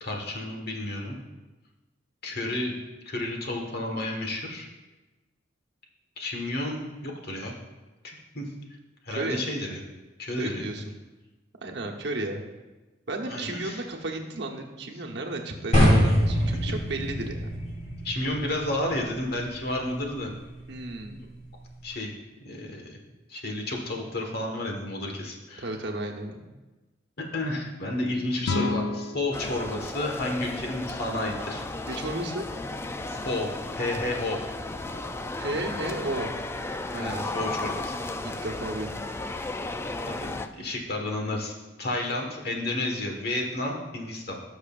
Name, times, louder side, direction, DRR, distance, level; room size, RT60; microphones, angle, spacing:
voice 1, 0.0-1.1 2.2-2.7 3.1-4.7 6.2-7.5 8.0-8.4 9.0-9.8 10.2-10.7 13.3-13.8 18.0-20.3 21.1-21.2 21.8-22.1 22.4-23.0 23.3-25.7 27.3-31.6 33.1-34.4 36.9-37.9 40.1-41.5 41.8-44.4, left 1 dB, 55° left, 1 dB, 1.5 m, -31 dB
voice 2, 9.1-9.4 10.4-10.9 11.6-12.4 13.1-17.5 20.7-21.2 25.6-26.5 31.9-32.4 35.4-36.3 36.9-37.4 38.2-39.0, right 2 dB, 60° right, 1 dB, 1.1 m, -33 dB
sound 1, 15.7-21.9, equal, 40° left, 3.4 m, -27 dB
sound 2, 28.4-31.5, left 3 dB, 75° left, 0.6 m, -33 dB
sound 3, 29.3-40.5, left 2 dB, 15° left, 0.3 m, -34 dB
17.5 x 6.5 x 2.5 m, 1.2 s
head